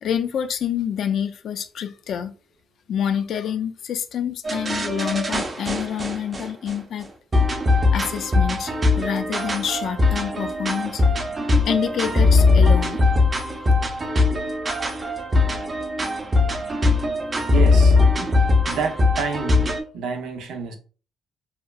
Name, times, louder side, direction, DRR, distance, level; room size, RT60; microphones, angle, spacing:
voice 1, 0.0-2.3 2.9-7.1 7.9-11.0 11.6-13.0, left 8 dB, 65° left, 0.3 m, -27 dB
sound 1, 4.4-6.7 7.3-19.8, left 3 dB, 30° right, 0.5 m, -20 dB
voice 2, 17.5-18.4 18.7-20.7, right 5 dB, 85° right, 0.5 m, -29 dB
2.8 x 2.4 x 2.2 m
cardioid pair, 90°, 0 cm